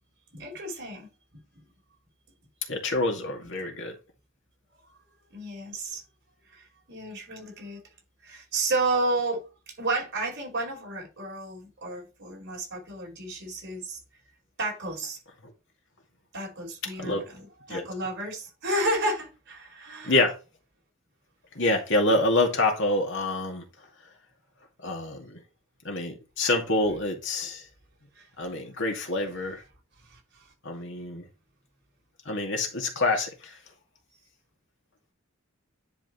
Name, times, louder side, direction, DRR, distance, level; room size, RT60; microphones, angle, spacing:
voice 1, 0.3-1.1 1.5-1.7 5.3-6.0 6.5-7.8 8.2-14.0 14.6-15.2 16.3-20.2 28.1-28.3 30.0-30.4, right 2 dB, 60° right, 5.1 m, -32 dB
voice 2, 2.7-3.9 17.0-17.3 17.7-17.8 20.1-20.4 21.5-23.7 24.8-25.4 25.8-27.6 28.4-29.6 30.6-31.3 32.3-33.6, left 2 dB, 65° left, 2.3 m, -26 dB
10.5 x 5.0 x 3.2 m
head